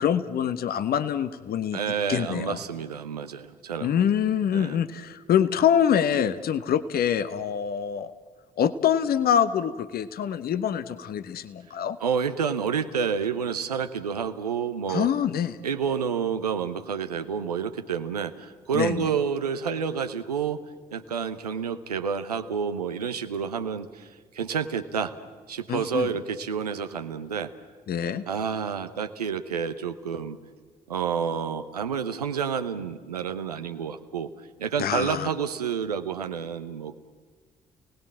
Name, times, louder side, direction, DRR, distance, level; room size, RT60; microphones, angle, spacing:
voice 1, 0.0-1.8 2.1-2.6 3.8-8.1 8.6-12.0 14.9-15.6 18.7-19.0 25.7-26.1 27.9-28.2 34.8-35.3, left 9 dB, 50° left, 13 dB, 1.0 m, -25 dB
voice 2, 1.7-4.1 4.5-4.8 12.0-15.1 15.6-20.6 20.9-25.1 25.5-27.5 28.3-30.4 30.9-37.0, right 6 dB, 85° right, 9 dB, 0.9 m, -29 dB
29.5 x 19.0 x 7.4 m, 1.5 s
figure-of-eight pair, 40°, 20 cm